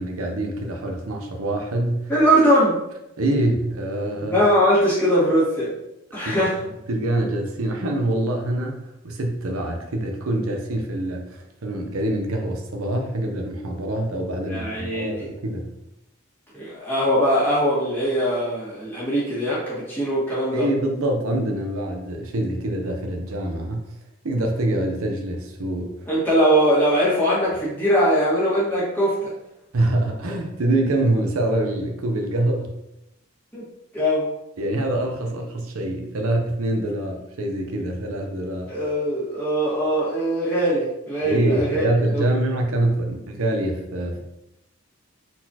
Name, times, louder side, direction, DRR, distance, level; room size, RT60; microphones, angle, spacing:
voice 1, 0.0-2.1 3.2-4.4 6.2-15.7 20.5-23.8 24.2-26.1 29.7-32.7 34.6-38.7 41.2-44.2, right 1 dB, 75° right, 2 dB, 0.7 m, -25 dB
voice 2, 2.1-2.8 4.2-5.7 6.1-6.6 14.5-15.3 16.5-20.6 26.1-29.3 33.5-33.7 33.9-34.3 38.7-42.3, equal, 10° left, -9 dB, 1.6 m, -21 dB
4.1 x 4.1 x 2.8 m, 0.87 s
head